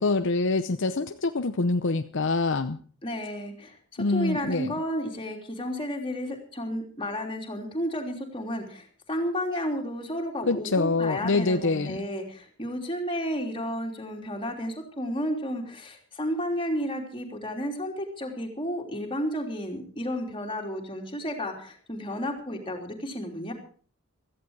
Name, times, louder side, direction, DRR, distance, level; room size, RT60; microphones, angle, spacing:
voice 1, 0.0-2.8 4.0-4.7 10.5-12.0, left 3 dB, 60° left, 9 dB, 0.7 m, -25 dB
voice 2, 3.0-23.5, equal, 25° left, 2 dB, 3.2 m, -32 dB
16.5 x 14.5 x 4.7 m, 0.43 s
head